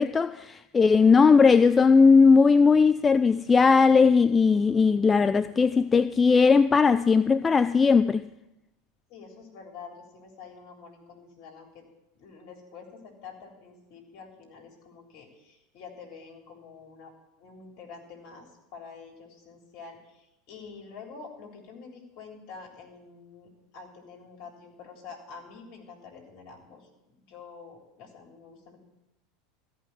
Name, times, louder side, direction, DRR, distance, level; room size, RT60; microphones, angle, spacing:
voice 1, 0.0-8.2, left 5 dB, 20° left, 0.4 m, -19 dB
voice 2, 9.1-11.9 12.2-17.1 17.4-28.8, left 5 dB, 55° left, 3.6 m, -47 dB
14.0 x 5.8 x 9.8 m
figure-of-eight pair, 80°, 0 cm